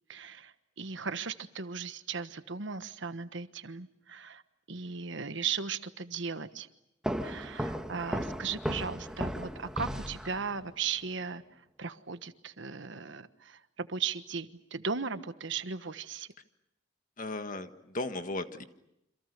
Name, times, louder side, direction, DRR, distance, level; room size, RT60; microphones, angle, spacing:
voice 1, 0.1-4.4 4.7-6.7 7.2-11.4 11.8-16.3, right 5 dB, 70° right, 11 dB, 1.3 m, -37 dB
sound 1, 7.0-10.7, equal, 5° right, 1.4 m, -35 dB
voice 2, 17.2-18.6, left 2 dB, 45° left, 8 dB, 1.6 m, -36 dB
28.5 x 27.0 x 6.7 m, 0.84 s
head